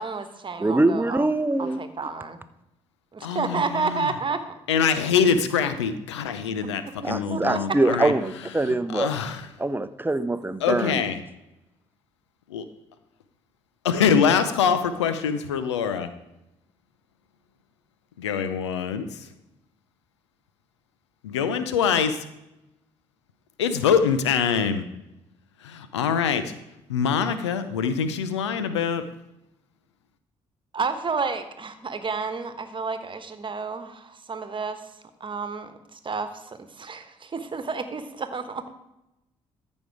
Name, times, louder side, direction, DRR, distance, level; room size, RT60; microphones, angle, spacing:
voice 1, 0.0-1.3 1.6-2.4 3.1-4.6 6.6-6.7 7.3-7.6 30.7-34.8 35.2-38.7, right 4 dB, 35° right, 9 dB, 1.2 m, -31 dB
voice 2, 0.6-1.8 7.0-9.1 9.6-11.0, right 2 dB, 15° right, 13 dB, 0.7 m, -23 dB
voice 3, 3.2-4.1 4.7-8.1 8.7-9.5 10.6-11.2 12.5-12.6 13.8-16.1 18.2-19.2 21.2-22.2 23.6-24.9 25.6-26.5 26.9-29.0, left 7 dB, 90° left, 11 dB, 0.6 m, -24 dB
14.0 x 5.3 x 4.8 m, 0.90 s
hypercardioid pair, 45°, 14 cm